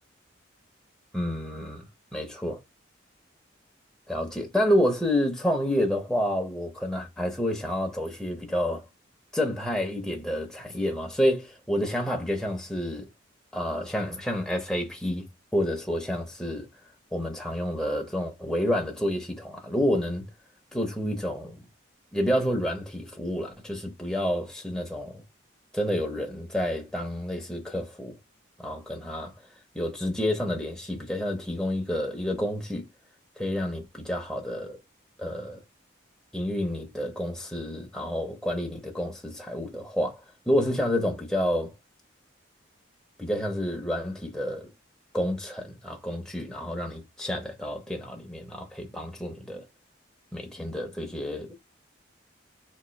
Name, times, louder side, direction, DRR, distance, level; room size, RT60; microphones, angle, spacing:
voice 1, 1.1-1.8 2.1-2.6 4.1-8.9 9.3-13.1 13.5-15.2 15.5-16.7 17.1-20.2 20.7-21.7 22.1-25.2 25.7-28.1 28.6-29.3 29.7-32.8 33.4-34.8 35.2-35.6 36.3-41.7 43.2-44.7 45.1-49.7 50.3-51.5, equal, 5° left, 0.7 m, -29 dB
4.3 x 3.0 x 2.2 m
head